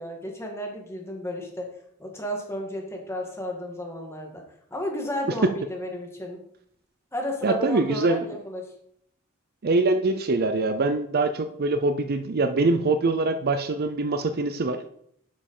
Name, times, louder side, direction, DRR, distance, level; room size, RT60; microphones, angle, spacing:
voice 1, 0.0-1.7 2.0-4.4 4.7-6.4 7.1-8.7, equal, 10° left, 1 dB, 1.7 m, -33 dB
voice 2, 7.4-8.3 9.6-14.8, right 3 dB, 45° right, 9 dB, 0.5 m, -24 dB
8.4 x 5.4 x 5.4 m, 0.70 s
head